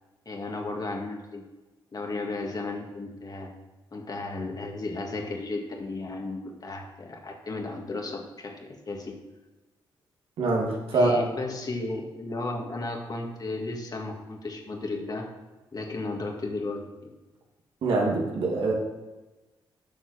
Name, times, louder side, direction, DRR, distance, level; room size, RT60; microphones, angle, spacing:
voice 1, 0.3-1.5 1.9-3.5 3.9-9.2 10.9-15.3 15.7-17.1, left 2 dB, 40° left, 1 dB, 2.0 m, -34 dB
voice 2, 10.4-11.2 17.8-18.7, right 2 dB, 75° right, -2 dB, 2.3 m, -24 dB
7.3 x 6.3 x 6.4 m, 1.1 s
supercardioid pair, 55°, 10 cm